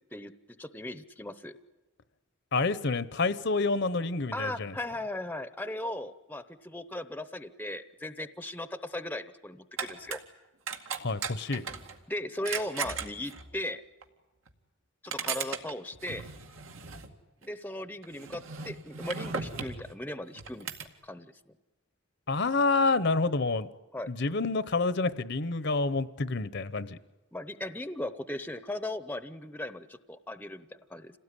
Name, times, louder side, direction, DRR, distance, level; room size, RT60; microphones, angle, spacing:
voice 1, 0.6-1.5 4.3-10.2 12.1-13.8 15.0-16.2 17.4-20.7 21.0-21.3 23.9-24.1 27.3-31.2, left 1 dB, 10° left, 13 dB, 0.8 m, -37 dB
voice 2, 2.5-4.7 11.0-11.6 22.3-23.7 24.1-27.0, left 3 dB, 55° left, 15 dB, 0.9 m, -28 dB
sound 1, 9.8-10.2 10.7-12.0 12.4-13.5 14.0-14.1 14.5-14.6 15.1-17.1 17.4-17.5 18.0-19.9 20.4-20.9, right 6 dB, 80° right, 2.2 m, -37 dB
27.5 x 18.0 x 9.9 m, 1.1 s
head